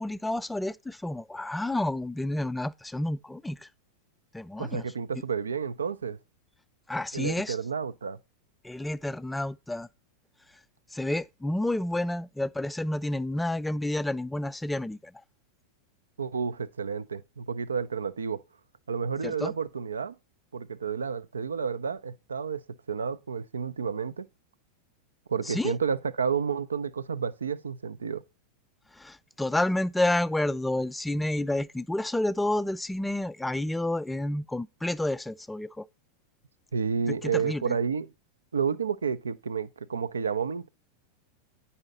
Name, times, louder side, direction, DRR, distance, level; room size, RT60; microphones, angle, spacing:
voice 1, 0.0-3.6 4.3-4.8 6.9-7.6 8.6-9.9 10.9-15.0 19.2-19.5 25.5-25.7 29.0-35.8 37.3-37.7, left 1 dB, 5° left, 0.3 m, -30 dB
voice 2, 4.6-6.2 7.1-8.2 16.2-18.4 18.9-20.2 20.5-22.6 22.9-24.3 25.3-28.2 36.7-38.1 38.5-40.7, right 6 dB, 70° right, 0.5 m, -30 dB
9.6 x 5.5 x 4.0 m
figure-of-eight pair, 90°, 0 cm